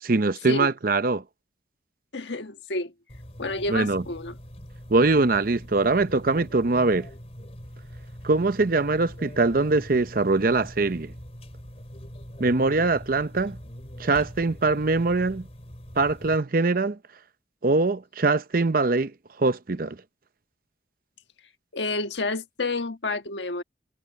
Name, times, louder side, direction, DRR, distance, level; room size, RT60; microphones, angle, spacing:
voice 1, 0.0-1.2 3.7-4.0 4.9-7.1 8.2-11.1 12.4-13.6 14.0-15.5 16.0-17.0 17.6-20.0, right 3 dB, 50° right, 0.7 m, -22 dB
voice 2, 2.1-2.9 3.4-4.4 21.7-23.6, left 2 dB, 75° left, 1.5 m, -29 dB
sound 1, 3.1-16.4, equal, 35° left, 3.6 m, -43 dB
head